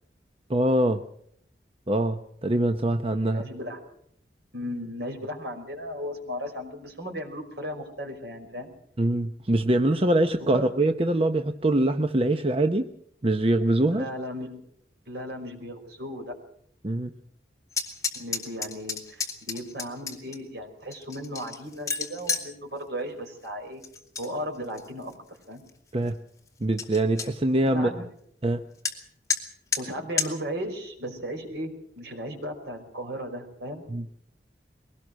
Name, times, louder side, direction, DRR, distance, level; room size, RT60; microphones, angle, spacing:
voice 1, 0.5-1.0 1.9-3.4 9.0-12.9 13.2-14.1 16.8-17.1 25.9-26.1 26.6-27.9 28.4-28.6 33.9-34.1, right 1 dB, 30° right, 7 dB, 0.8 m, -23 dB
voice 2, 3.3-3.8 4.5-8.7 10.4-10.7 13.9-14.5 15.1-16.3 18.1-23.8 24.2-25.2 25.5-25.6 27.6-28.0 29.8-33.8, equal, 65° right, 3 dB, 5.2 m, -36 dB
sound 1, 17.7-20.4 20.9-22.5 23.8-24.3 24.6-25.1 25.7-25.8 26.1-26.2 26.5-26.6 26.8-27.3 28.9-29.0 29.3-29.4 29.7-29.8 30.2-30.3, left 5 dB, 20° left, 2.6 m, -30 dB
22.5 x 18.5 x 6.3 m, 0.68 s
head